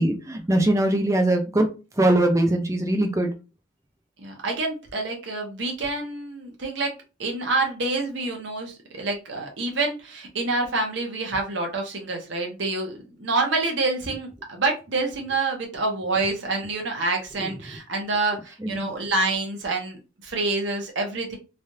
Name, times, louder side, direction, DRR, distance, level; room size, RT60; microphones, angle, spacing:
voice 1, 0.0-1.7 2.0-3.3 18.7-18.9, right 1 dB, 15° right, 3 dB, 0.5 m, -21 dB
voice 2, 4.2-6.9 7.2-21.4, right 3 dB, 60° right, 1 dB, 0.8 m, -27 dB
3.3 x 2.4 x 2.7 m, 0.30 s
head